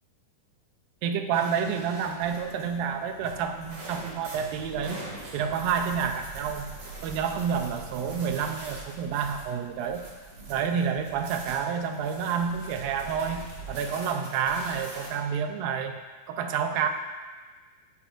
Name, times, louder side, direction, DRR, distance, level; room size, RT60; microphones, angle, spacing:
voice 1, 1.0-5.0 5.3-6.7 7.0-10.0 10.5-16.0 16.3-16.9, right 7 dB, 80° right, 6 dB, 2.3 m, -29 dB
sound 1, 1.3-15.1, right 2 dB, 45° right, 2.6 m, -43 dB
16.5 x 9.5 x 2.5 m, 1.4 s
omnidirectional pair, 4.4 m